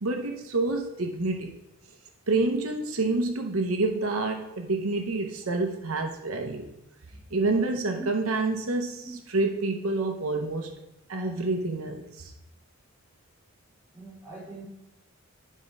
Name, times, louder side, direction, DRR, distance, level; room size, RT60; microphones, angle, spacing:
voice 1, 0.0-1.5 2.3-6.7 7.3-10.7 11.1-12.3, right 3 dB, 85° right, 3 dB, 0.8 m, -28 dB
voice 2, 13.9-14.6, right 3 dB, 10° right, -7 dB, 2.5 m, -42 dB
9.9 x 3.7 x 5.3 m, 0.87 s
head